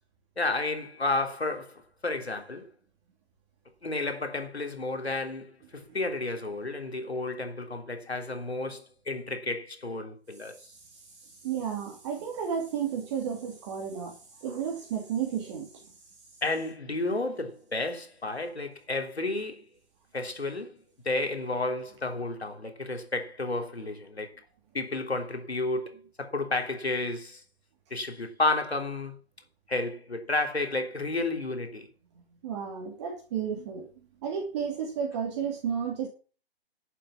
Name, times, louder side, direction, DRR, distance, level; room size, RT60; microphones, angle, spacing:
voice 1, 0.4-2.7 3.8-10.7 16.4-19.7 20.1-20.8 21.0-24.4 24.7-27.4 27.9-29.2 29.7-31.9, left 2 dB, 80° left, 3.5 m, -31 dB
voice 2, 11.4-14.1 14.4-15.7 32.4-33.9 34.2-36.1, right 7 dB, 25° right, 2.6 m, -32 dB
11.5 x 7.5 x 7.2 m
figure-of-eight pair, 140°, 32 cm